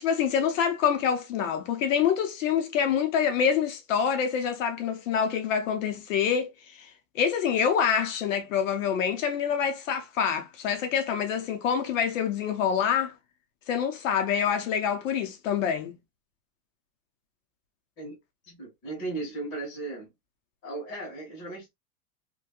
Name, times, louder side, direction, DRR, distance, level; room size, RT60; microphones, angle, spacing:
voice 1, 0.0-6.9 7.1-13.1 13.7-16.0, left 7 dB, 50° left, 0.7 m, -26 dB
voice 2, 18.4-20.1 20.6-21.7, right 2 dB, 20° left, 1.4 m, -36 dB
3.1 x 2.6 x 2.3 m
supercardioid pair, 175°, 49 cm